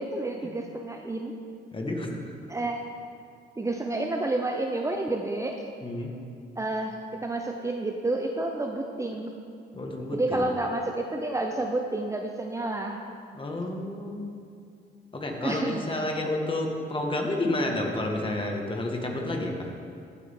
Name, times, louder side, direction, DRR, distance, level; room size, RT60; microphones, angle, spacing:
voice 1, 0.0-1.3 2.5-2.8 3.6-5.6 6.6-9.3 10.1-13.0 15.4-15.8, right 2 dB, 15° right, 2 dB, 0.7 m, -30 dB
voice 2, 1.7-2.3 5.8-6.1 9.7-10.5 13.3-14.2 15.1-19.7, left 1 dB, 25° left, 1 dB, 1.8 m, -30 dB
15.0 x 8.5 x 3.7 m, 2.4 s
cardioid pair, 90°, 20 cm